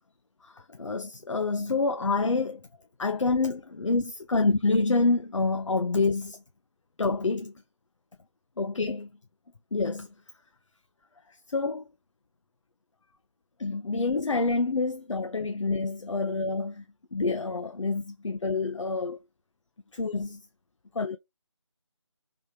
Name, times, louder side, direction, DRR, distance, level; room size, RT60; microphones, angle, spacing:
voice 1, 0.4-2.6 3.0-6.4 7.0-7.5 8.6-9.1 9.7-10.1 11.3-11.9 13.6-16.8 17.1-19.2 19.9-20.4 20.9-21.2, left 3 dB, 75° left, 0.5 m, -27 dB
3.4 x 2.9 x 2.9 m
figure-of-eight pair, 160°, 16 cm